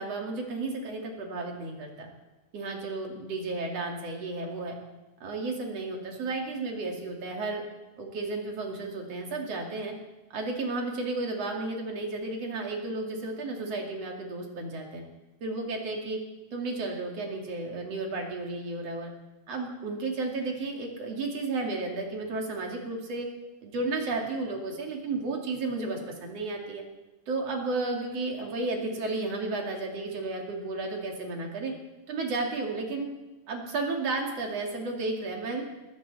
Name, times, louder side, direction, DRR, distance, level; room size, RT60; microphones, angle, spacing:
voice 1, 0.0-2.1 2.5-4.7 5.2-7.6 8.0-9.9 10.3-15.0 15.4-16.2 16.5-19.1 19.5-23.3 23.6-26.8 27.3-31.7 32.1-33.1 33.5-35.6, right 3 dB, 50° right, 1 dB, 3.4 m, -33 dB
22.5 x 15.0 x 4.2 m, 1.1 s
omnidirectional pair, 3.7 m